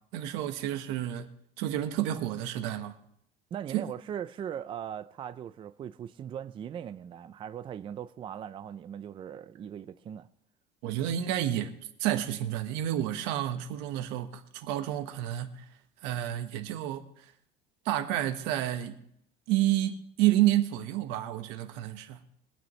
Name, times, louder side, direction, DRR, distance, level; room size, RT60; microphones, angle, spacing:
voice 1, 0.1-1.3 1.6-2.9 3.7-3.8 10.8-11.7 12.0-15.7 16.0-17.3 17.8-19.0 19.5-22.2, right 13 dB, 90° right, 1.4 m, -30 dB
voice 2, 3.5-10.3, right 9 dB, 30° right, 0.4 m, -39 dB
23.5 x 9.1 x 3.2 m
cardioid pair, 155°, 18 cm